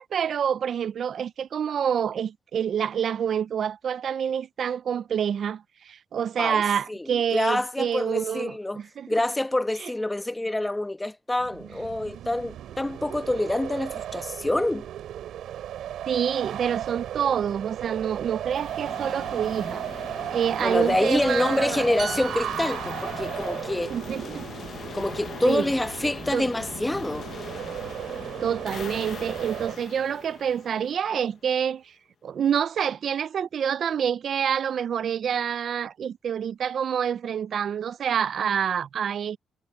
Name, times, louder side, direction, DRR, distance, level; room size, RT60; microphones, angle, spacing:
voice 1, 0.0-8.6 9.0-9.1 9.8-9.9 16.1-21.8 23.9-24.5 25.4-25.7 26.3-26.5 28.4-31.9 32.2-39.4, right 8 dB, 60° right, 0.5 m, -27 dB
voice 2, 6.9-8.8 9.1-14.9 20.6-23.9 24.9-27.3, left 1 dB, 10° left, 1.1 m, -26 dB
sound 1, 11.4-29.8, right 11 dB, 75° right, 5.1 m, -35 dB
sound 2, 18.5-31.4, left 7 dB, 50° left, 0.9 m, -40 dB
sound 3, 22.0-25.6 25.9-26.2, right 5 dB, 40° right, 5.0 m, -41 dB
cardioid pair, 90°, 0 cm